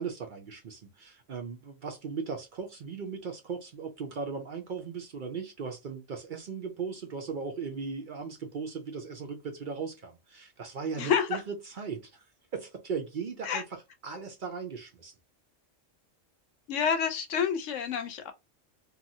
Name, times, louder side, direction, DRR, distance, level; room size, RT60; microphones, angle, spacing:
voice 1, 0.0-12.2 12.5-15.1, right 5 dB, 55° right, 0.5 m, -37 dB
voice 2, 11.0-11.4 13.4-13.6 16.7-18.3, left 7 dB, 75° left, 0.9 m, -28 dB
2.9 x 2.4 x 2.6 m
omnidirectional pair, 1.3 m